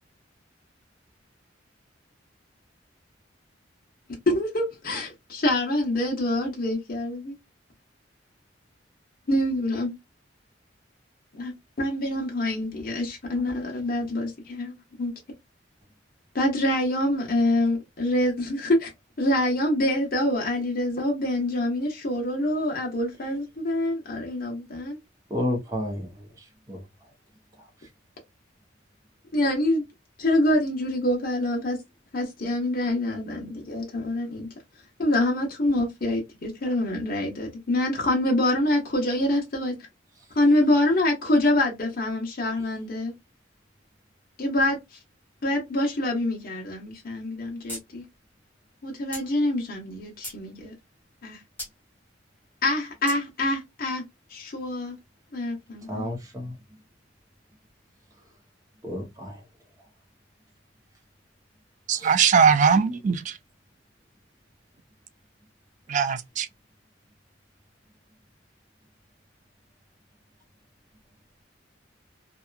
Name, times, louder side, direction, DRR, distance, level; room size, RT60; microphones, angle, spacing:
voice 1, 4.3-7.4 9.3-10.0 11.3-15.1 16.3-18.9 19.2-25.0 29.3-29.8 30.2-31.8 32.1-34.5 35.0-39.7 40.3-43.1 44.4-44.8 45.4-48.0 48.8-50.7 51.2-51.4 52.6-54.0 54.3-55.0 55.3-55.5, left 1 dB, 50° left, 0.9 m, -25 dB
voice 2, 25.3-27.1 27.6-27.9 55.9-56.2 58.8-59.4 61.9-62.2 65.9-66.0, left 1 dB, 20° right, 0.8 m, -32 dB
sound 1, 47.7-47.8 48.1-48.2 49.1-49.3 49.9-50.4 51.6-51.7 53.1-53.2, left 1 dB, 10° left, 1.2 m, -36 dB
voice 3, 61.9-63.4 65.9-66.5, right 6 dB, 40° right, 0.3 m, -20 dB
2.8 x 2.3 x 2.3 m
head